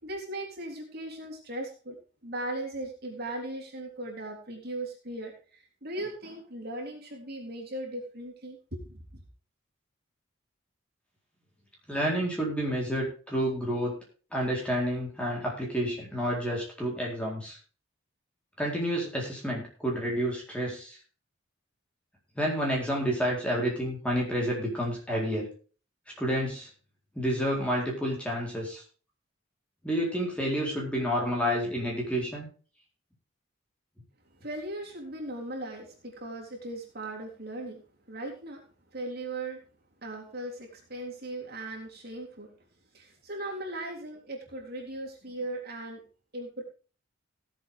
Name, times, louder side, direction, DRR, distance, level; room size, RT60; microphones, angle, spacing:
voice 1, 0.0-2.0 2.2-9.2 34.3-38.6 38.9-39.6 40.0-42.5 42.9-46.0 46.3-46.6, right 1 dB, 50° right, -1 dB, 3.7 m, -38 dB
voice 2, 11.9-13.9 14.3-17.6 18.6-21.0 22.3-25.5 26.2-26.7 27.1-28.8 29.8-32.5, equal, 5° left, -2 dB, 4.1 m, -29 dB
17.5 x 7.9 x 3.6 m, 0.38 s
head